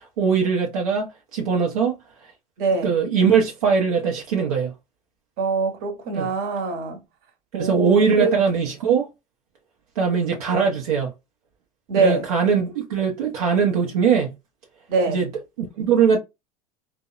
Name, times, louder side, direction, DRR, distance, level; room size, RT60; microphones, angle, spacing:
voice 1, 0.0-2.0 2.8-4.7 6.1-6.3 7.5-9.1 10.0-11.1 11.9-14.3 15.1-15.3 15.6-16.2, right 6 dB, 80° right, 0.6 m, -21 dB
voice 2, 2.6-2.9 5.4-7.0 7.5-8.3 11.9-12.3 14.9-15.2, right 4 dB, 55° right, 1.0 m, -23 dB
2.6 x 2.0 x 2.3 m
hypercardioid pair, 85°, 19 cm